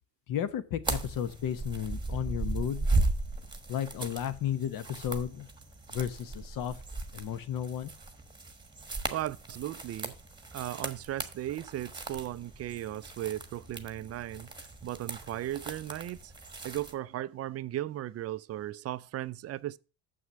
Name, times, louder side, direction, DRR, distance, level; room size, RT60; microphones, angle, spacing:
voice 1, 0.3-2.9 3.7-5.5 5.9-6.8 7.1-7.9, left 9 dB, 50° left, 1.2 m, -33 dB
sound 1, 0.8-16.9, right 3 dB, 10° right, 1.3 m, -37 dB
voice 2, 9.1-10.2 10.5-14.5 14.8-16.3 16.6-19.8, right 13 dB, 35° right, 0.5 m, -36 dB
7.1 x 6.2 x 6.3 m
supercardioid pair, 100°, 42 cm